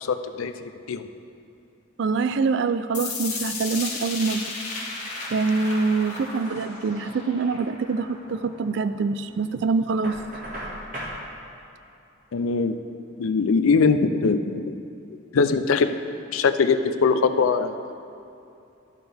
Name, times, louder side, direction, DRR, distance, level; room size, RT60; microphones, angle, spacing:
voice 1, 0.1-1.0 12.3-12.8 13.2-14.7 15.3-15.9 16.3-17.7, left 4 dB, 90° left, 9 dB, 0.4 m, -22 dB
voice 2, 2.0-4.4 5.3-10.2, right 4 dB, 60° right, 12 dB, 0.3 m, -25 dB
sound 1, 2.9-8.9, left 3 dB, 35° left, 1.3 m, -34 dB
Knock, 10.0-11.2, equal, 40° right, 1.9 m, -35 dB
12.5 x 6.0 x 3.5 m, 2.7 s
head